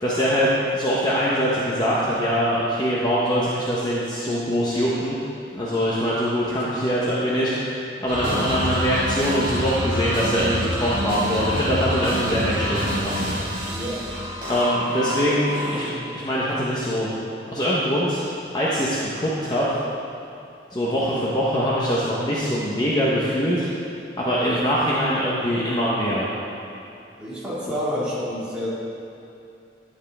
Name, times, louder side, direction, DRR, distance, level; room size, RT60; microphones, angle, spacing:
voice 1, 0.0-5.2 5.5-13.6 14.5-17.1 17.5-18.2 18.5-19.8 20.7-23.7 24.2-26.3 27.7-27.8, equal, 25° left, -7 dB, 1.1 m, -23 dB
sound 1, 8.1-16.1, left 1 dB, 25° right, 2.6 m, -27 dB
voice 2, 27.2-28.7, equal, 5° right, -9 dB, 2.4 m, -29 dB
12.0 x 9.5 x 3.6 m, 2.6 s
head